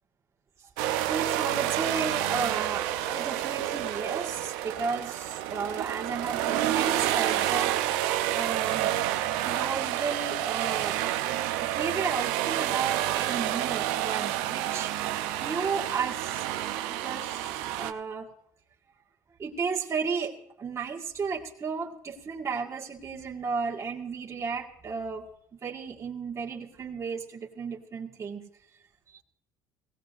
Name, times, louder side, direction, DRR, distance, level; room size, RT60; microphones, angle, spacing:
sound 1, 0.8-17.9, right 13 dB, 80° right, 0.6 m, -29 dB
voice 1, 1.0-7.7 8.3-9.0 9.4-11.0 11.6-14.9 15.4-16.5 16.9-18.3 19.4-25.3 25.6-28.4, right 5 dB, 35° right, -2 dB, 1.8 m, -33 dB
17.5 x 16.5 x 2.6 m, 0.71 s
supercardioid pair, 80°, 9 cm